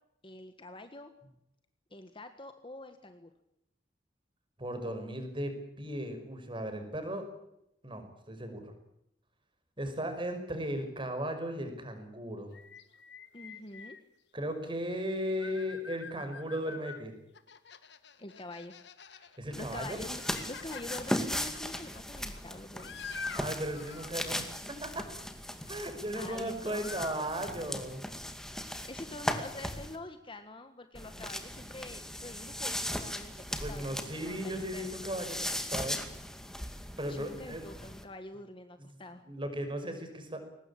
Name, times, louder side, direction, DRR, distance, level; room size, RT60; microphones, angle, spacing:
voice 1, 0.2-1.1 1.9-3.3 13.3-14.0 18.2-18.7 19.6-22.9 26.2-27.0 28.8-35.0 37.1-39.2, left 2 dB, 30° left, 8 dB, 1.6 m, -46 dB
voice 2, 4.6-7.3 7.8-8.7 9.8-12.5 14.3-17.1 19.4-20.0 23.3-25.1 25.7-28.0 31.1-31.2 33.6-36.0 37.0-37.6 39.3-40.4, equal, 30° right, 6 dB, 5.7 m, -36 dB
sound 1, 12.5-14.0 15.0-17.0 17.3-19.4 19.8-24.1 26.2-26.5 26.8-27.2, left 5 dB, 65° left, 1.7 m, -46 dB
sound 2, 19.5-30.0 30.9-38.0, equal, 5° left, 2.3 m, -38 dB
22.5 x 19.5 x 8.8 m, 0.82 s
head